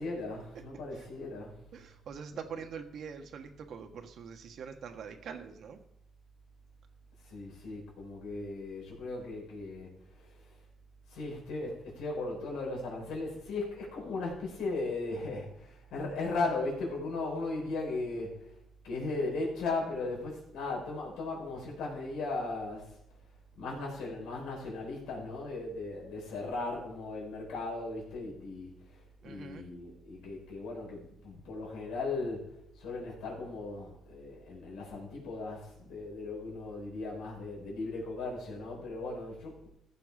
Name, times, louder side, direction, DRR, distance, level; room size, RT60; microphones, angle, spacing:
voice 1, 0.0-1.5 2.3-2.7 7.2-10.5 11.1-18.5 18.8-23.0 23.6-32.5 32.8-39.7, left 3 dB, 85° left, -3 dB, 4.3 m, -37 dB
voice 2, 1.7-5.8 29.2-29.7, right 6 dB, 65° right, 5 dB, 1.4 m, -44 dB
15.0 x 6.0 x 4.8 m, 0.84 s
cardioid pair, 90°, 0 cm